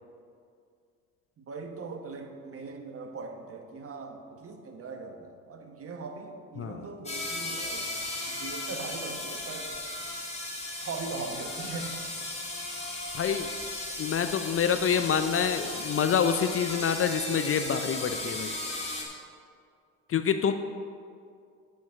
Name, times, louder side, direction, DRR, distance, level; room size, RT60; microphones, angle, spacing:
voice 1, 1.4-7.9 8.3-9.7 10.8-12.0, right 4 dB, 35° right, 5 dB, 1.2 m, -40 dB
sound 1, 7.1-19.0, left 2 dB, 15° left, 2.2 m, -36 dB
voice 2, 13.1-13.5 14.0-18.5 20.1-20.5, left 7 dB, 35° left, 9 dB, 0.5 m, -27 dB
8.4 x 6.2 x 5.9 m, 2.3 s
hypercardioid pair, 70°, 38 cm